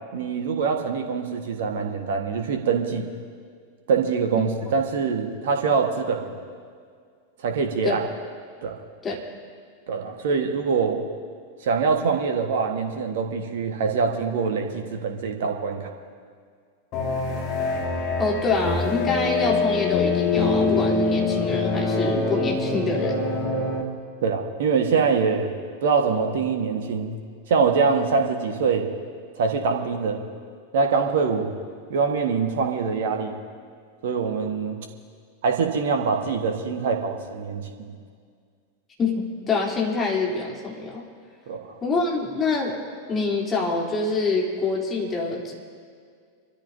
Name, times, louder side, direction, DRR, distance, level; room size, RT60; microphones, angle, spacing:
voice 1, 0.1-3.1 3.9-6.4 7.4-8.0 8.6-8.8 9.9-11.0 11.6-15.9 24.2-25.5 25.8-27.2 27.5-28.9 29.3-30.3 30.7-31.5 31.9-33.4 34.0-34.8 35.4-37.9 41.5-41.7, right 5 dB, 55° right, 4 dB, 1.4 m, -24 dB
sound 1, 16.9-23.8, left 3 dB, 35° left, 2.1 m, -24 dB
voice 2, 18.2-23.2 39.0-41.0 41.8-42.7 43.1-45.5, left 3 dB, 20° left, -3 dB, 3.2 m, -25 dB
26.5 x 13.5 x 2.7 m, 2.1 s
figure-of-eight pair, 90°, 0 cm